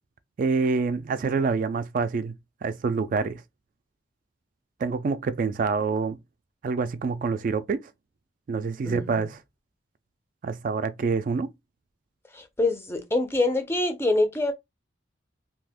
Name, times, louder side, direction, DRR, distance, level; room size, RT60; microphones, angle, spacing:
voice 1, 0.4-2.3 2.6-3.4 4.8-6.2 6.6-7.9 8.5-9.4 10.4-11.5, right 4 dB, 45° right, 0.3 m, -26 dB
voice 2, 8.8-9.3 12.3-14.5, left 2 dB, 15° left, 0.5 m, -25 dB
2.7 x 2.4 x 3.4 m
head